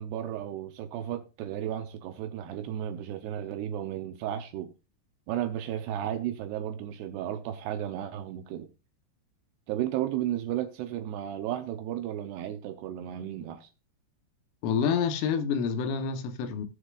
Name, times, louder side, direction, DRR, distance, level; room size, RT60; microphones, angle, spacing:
voice 1, 0.0-4.7 5.3-8.7 9.7-13.7, right 11 dB, 75° right, 2.5 m, -34 dB
voice 2, 14.6-16.7, left 6 dB, 85° left, 3.7 m, -28 dB
18.5 x 6.7 x 2.4 m
omnidirectional pair, 5.6 m